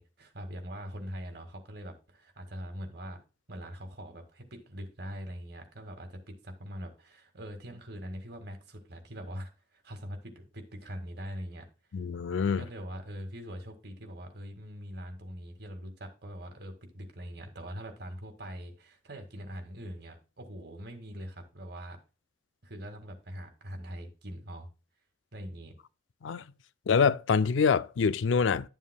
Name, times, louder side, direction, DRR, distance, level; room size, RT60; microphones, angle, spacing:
voice 1, 0.0-3.2 3.5-11.7 12.6-22.0 22.6-24.7 25.3-25.7, equal, 60° right, 2.0 m, -42 dB
voice 2, 11.9-12.6 26.2-26.4 26.9-28.7, left 5 dB, 85° left, 0.4 m, -25 dB
11.0 x 7.4 x 2.3 m
head